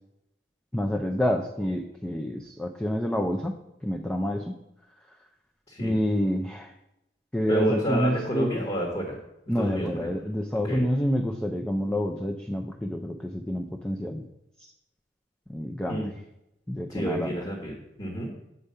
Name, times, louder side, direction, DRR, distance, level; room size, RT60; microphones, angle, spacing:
voice 1, 0.7-3.6 3.8-4.6 5.8-6.7 7.3-8.6 9.5-14.2 15.5-16.1 16.7-17.3, equal, 5° left, 2 dB, 0.5 m, -28 dB
voice 2, 7.5-9.2 9.6-10.1 10.6-10.8 15.9-16.1 16.9-18.3, right 1 dB, 35° left, 0 dB, 1.5 m, -29 dB
8.1 x 5.1 x 5.6 m, 0.88 s
head